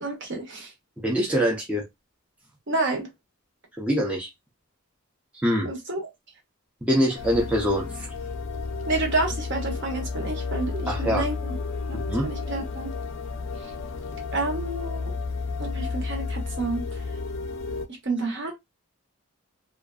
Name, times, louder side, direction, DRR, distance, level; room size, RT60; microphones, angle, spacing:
voice 1, 0.0-0.7 2.7-3.1 5.6-6.0 8.9-11.6 11.9-12.9 14.3-15.1 15.6-16.8 18.0-18.5, right 2 dB, 50° right, 0.8 m, -29 dB
voice 2, 1.0-1.9 3.8-4.3 5.4-5.7 6.8-8.1 10.9-11.3 11.9-12.3, equal, 5° right, 0.4 m, -24 dB
sound 1, 7.1-17.9, left 4 dB, 55° left, 0.4 m, -32 dB
2.5 x 2.3 x 2.3 m
head